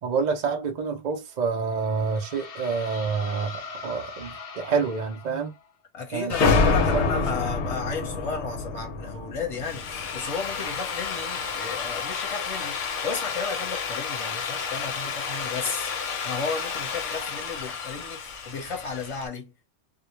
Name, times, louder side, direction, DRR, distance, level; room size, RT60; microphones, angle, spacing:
voice 1, 0.0-5.5 6.1-7.3, right 5 dB, 55° right, 0.5 m, -28 dB
sound 1, 1.4-5.7, left 4 dB, 55° left, 0.4 m, -41 dB
voice 2, 5.9-15.9 16.2-19.5, left 4 dB, 30° left, 0.9 m, -34 dB
sound 2, 6.3-10.8, left 4 dB, 70° left, 0.9 m, -25 dB
Drill, 9.4-19.3, left 6 dB, 90° left, 1.0 m, -32 dB
2.3 x 2.1 x 3.0 m
omnidirectional pair, 1.2 m